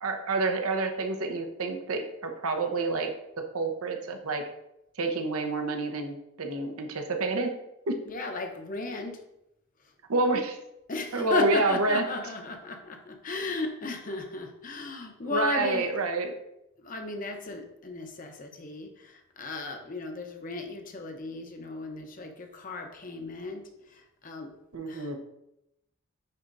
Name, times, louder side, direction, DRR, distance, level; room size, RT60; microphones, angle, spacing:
voice 1, 0.0-3.1 3.5-4.4 5.0-7.5 7.9-8.0 10.1-10.6 11.1-12.0 15.2-16.3 24.7-25.2, right 3 dB, 75° right, 4 dB, 0.8 m, -28 dB
voice 2, 8.1-9.1 10.9-15.9 16.8-24.5 24.9-25.1, left 3 dB, 35° left, 4 dB, 0.7 m, -35 dB
9.9 x 4.2 x 2.6 m, 0.85 s
head